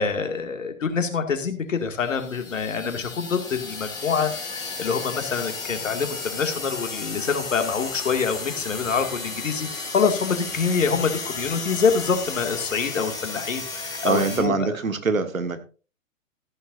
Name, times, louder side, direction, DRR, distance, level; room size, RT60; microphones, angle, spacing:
voice 1, 0.0-14.7, left 5 dB, 65° left, 6 dB, 2.3 m, -26 dB
sound 1, 2.0-14.4, left 4 dB, 10° left, 3.4 m, -34 dB
voice 2, 14.0-15.6, right 4 dB, 80° right, 9 dB, 1.6 m, -24 dB
14.0 x 11.0 x 2.6 m, 0.35 s
figure-of-eight pair, 120°, 40 cm